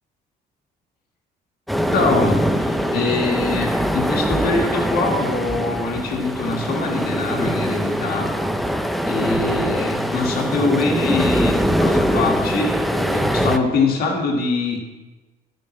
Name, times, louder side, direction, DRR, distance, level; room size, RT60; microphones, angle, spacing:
sound 1, 1.7-13.6, equal, ahead, 0.7 m, -22 dB
voice 1, 1.9-8.3 9.0-14.8, left 3 dB, 65° left, 0 dB, 2.0 m, -23 dB
13.0 x 10.5 x 3.2 m, 1.2 s
cardioid pair, 110°, 17 cm